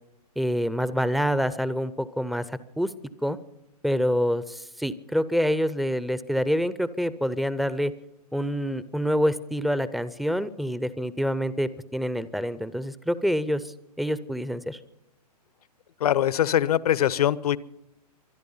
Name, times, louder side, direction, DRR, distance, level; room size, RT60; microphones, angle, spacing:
voice 1, 0.4-2.9 3.2-3.4 3.8-7.9 8.3-14.8, equal, ahead, 16 dB, 0.5 m, -27 dB
voice 2, 16.0-17.6, left 11 dB, 65° left, 19 dB, 0.8 m, -22 dB
24.5 x 10.5 x 5.5 m, 0.85 s
hypercardioid pair, 135°, 21 cm